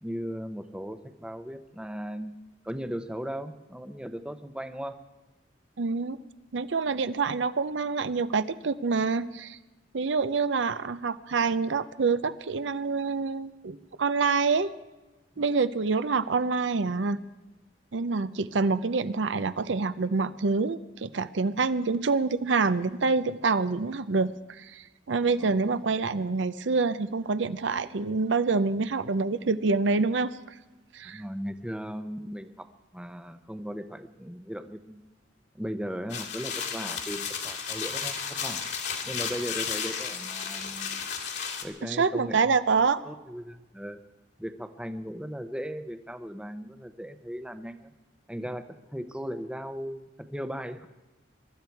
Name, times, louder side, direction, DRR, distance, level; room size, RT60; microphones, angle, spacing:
voice 1, 0.0-2.4 2.6-5.0 15.4-15.5 25.4-25.6 31.0-32.7 32.9-35.0 35.5-38.6 39.0-41.0 41.6-42.8 43.0-44.0 44.4-47.9 48.3-50.9, equal, 5° right, 9 dB, 0.7 m, -37 dB
voice 2, 5.8-6.2 6.5-9.6 9.9-14.7 15.4-17.2 17.9-30.3 30.9-31.2 41.8-43.0, right 4 dB, 75° right, 14 dB, 0.6 m, -26 dB
sound 1, 36.1-41.6, left 6 dB, 65° left, 2.2 m, -33 dB
22.5 x 12.5 x 4.6 m, 1.1 s
head